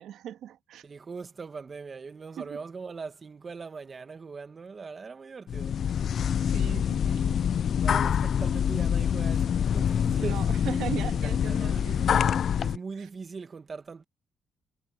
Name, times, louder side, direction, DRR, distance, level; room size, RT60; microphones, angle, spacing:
voice 1, 0.0-0.8 2.4-2.6 6.5-7.4 10.2-12.2, right 11 dB, 80° right, 2.1 m, -38 dB
voice 2, 0.8-5.8 7.8-10.7 11.0-11.8 12.6-14.0, right 4 dB, 35° right, 2.1 m, -41 dB
sound 1, 5.5-12.8, left 8 dB, 60° left, 0.4 m, -26 dB
cardioid pair, 90°, 0 cm